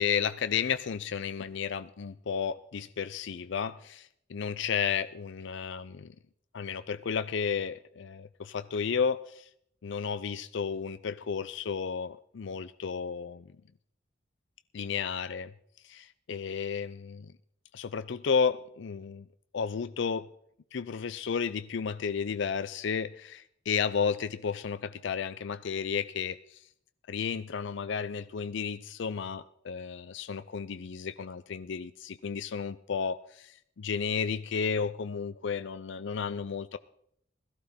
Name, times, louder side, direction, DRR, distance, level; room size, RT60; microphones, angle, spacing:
voice 1, 0.0-6.1 6.5-9.5 9.8-13.5 14.7-15.5 15.8-17.3 17.7-19.3 19.5-20.3 20.7-26.6 27.1-36.8, left 6 dB, 65° left, 14 dB, 0.5 m, -32 dB
17.0 x 14.5 x 4.3 m, 0.70 s
head